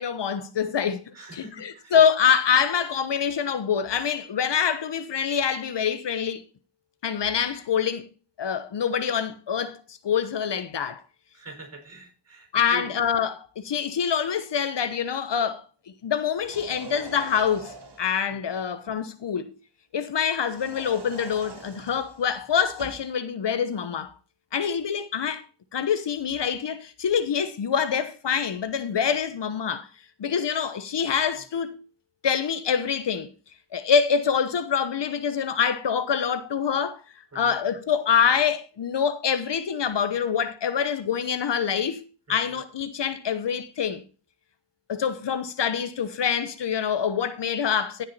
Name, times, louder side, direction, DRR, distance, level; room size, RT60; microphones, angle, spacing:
voice 1, 0.0-6.4 7.0-8.1 8.4-11.0 12.5-15.6 16.0-19.6 19.9-24.1 24.5-25.5 25.7-29.9 30.2-31.8 32.2-33.3 33.7-37.0 37.3-44.0 44.9-48.0, left 7 dB, 75° left, 1.0 m, -25 dB
voice 2, 1.1-1.9 11.3-12.9 18.3-18.5 37.3-37.6 42.3-42.6, right 1 dB, 35° right, 5.0 m, -44 dB
sound 1, 16.3-18.2 20.4-23.1, right 3 dB, 65° right, 2.6 m, -43 dB
16.0 x 6.0 x 4.1 m
wide cardioid pair, 85°, 42 cm